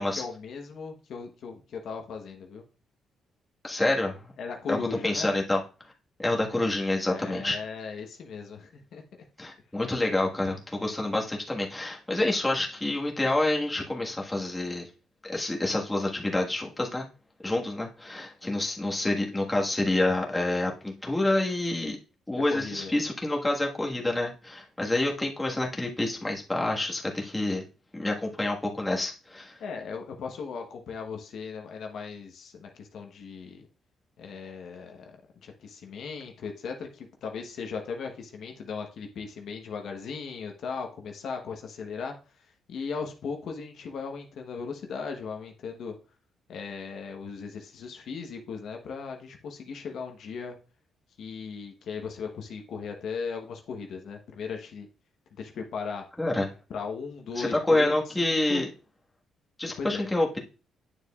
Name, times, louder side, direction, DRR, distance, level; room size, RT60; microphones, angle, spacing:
voice 1, 0.0-2.6 4.4-5.3 7.1-9.0 22.3-22.9 29.6-33.7 34.2-35.2 35.4-45.9 46.5-50.5 51.2-54.9 55.4-56.0 56.7-58.6 59.8-60.1, left 5 dB, 65° left, 3 dB, 1.1 m, -37 dB
voice 2, 3.6-4.2 4.7-4.8 5.0-5.6 6.2-7.6 9.4-14.9 15.2-17.1 17.4-22.0 22.3-27.6 27.9-29.6 56.2-56.5 57.4-58.7 59.6-60.4, left 2 dB, 15° left, -1 dB, 1.6 m, -27 dB
9.1 x 6.8 x 2.4 m, 0.33 s
cardioid pair, 90°, 0 cm